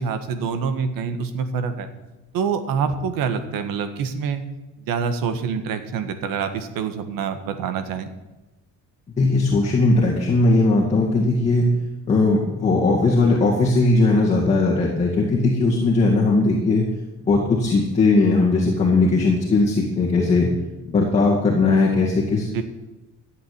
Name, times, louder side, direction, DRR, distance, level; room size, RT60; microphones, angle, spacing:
voice 1, 0.0-1.9 2.3-4.4 4.8-8.1 22.5-22.6, right 6 dB, 80° right, 9 dB, 1.7 m, -26 dB
voice 2, 9.2-11.7 12.1-16.9 17.3-20.5 20.9-22.5, left 3 dB, 20° left, -4 dB, 2.2 m, -18 dB
13.0 x 8.0 x 9.5 m, 1.0 s
cardioid pair, 175°, 33 cm